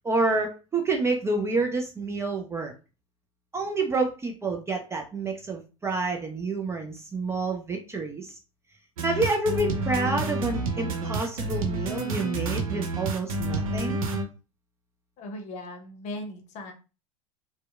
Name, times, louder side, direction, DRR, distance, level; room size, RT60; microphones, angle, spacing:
voice 1, 0.0-2.7 3.5-8.4 9.0-14.0, right 3 dB, 15° right, 2 dB, 0.4 m, -28 dB
sound 1, 9.0-14.2, right 2 dB, 75° right, 0.5 m, -29 dB
voice 2, 15.2-16.7, left 1 dB, 40° left, 4 dB, 0.7 m, -38 dB
2.7 x 2.1 x 2.3 m, 0.33 s
hypercardioid pair, 85°, 18 cm